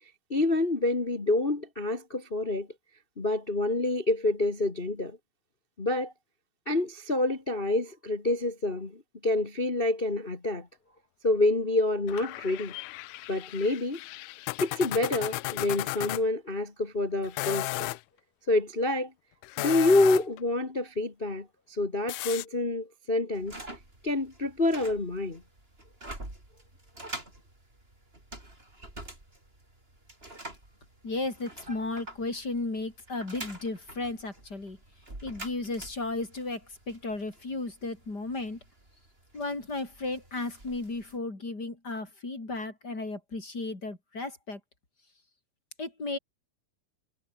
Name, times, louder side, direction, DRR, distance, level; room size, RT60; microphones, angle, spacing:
voice 1, 0.3-2.7 3.2-5.2 5.8-6.1 6.7-10.7 11.2-12.7 13.3-14.0 14.6-18.0 18.5-19.1 19.6-23.6 24.0-25.4, left 2 dB, 45° left, 0.7 m, -27 dB
sound 1, 12.1-16.2 17.2-18.0 19.4-20.4 22.1-22.5, left 21 dB, 85° left, 1.8 m, -35 dB
sound 2, 23.3-41.2, right 1 dB, 15° right, 5.8 m, -47 dB
voice 2, 31.0-34.8 35.2-38.6 39.3-44.6 45.8-46.2, left 2 dB, 25° left, 5.1 m, -34 dB
omnidirectional pair, 4.2 m